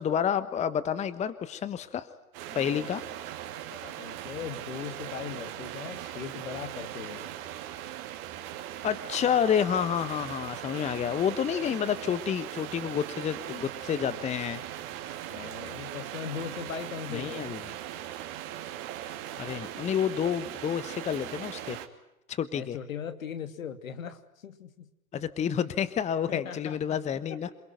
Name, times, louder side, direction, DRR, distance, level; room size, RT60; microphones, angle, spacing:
voice 1, 0.0-2.1 2.5-3.0 8.8-14.6 17.1-17.6 19.4-21.8 22.3-22.8 25.1-27.5, left 8 dB, 15° left, 14 dB, 1.1 m, -29 dB
sound 1, 2.3-21.9, right 12 dB, 40° right, 3.1 m, -39 dB
voice 2, 2.5-3.0 3.7-7.3 15.3-17.5 22.5-24.9 26.3-27.0, left 8 dB, 65° left, 9 dB, 2.8 m, -39 dB
28.0 x 22.5 x 9.2 m, 0.88 s
figure-of-eight pair, 105°, 43 cm